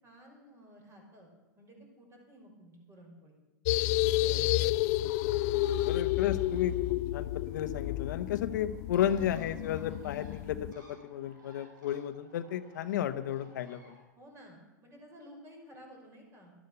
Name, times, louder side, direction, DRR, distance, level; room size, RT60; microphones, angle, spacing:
voice 1, 0.0-3.4 14.2-16.5, equal, 30° right, 1 dB, 5.7 m, -54 dB
sound 1, 3.7-10.7, left 16 dB, 55° left, 0.4 m, -30 dB
voice 2, 4.2-5.0 5.8-14.0, left 10 dB, 75° left, 10 dB, 1.0 m, -33 dB
Bird, 4.8-14.0, right 1 dB, 85° right, 5.0 m, -61 dB
12.5 x 12.5 x 6.8 m, 1.2 s
hypercardioid pair, 115°, 10 cm